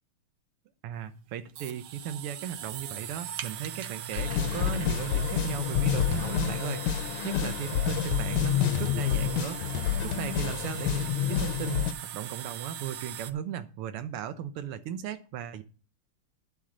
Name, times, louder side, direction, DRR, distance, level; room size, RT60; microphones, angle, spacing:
voice 1, 0.8-9.6 10.0-15.6, right 9 dB, 90° right, 10 dB, 1.7 m, -36 dB
sound 1, 0.9-13.3, right 10 dB, 70° right, 1.0 m, -40 dB
sound 2, 4.2-11.9, left 9 dB, 80° left, 1.4 m, -28 dB
9.9 x 3.8 x 7.3 m, 0.38 s
omnidirectional pair, 2.4 m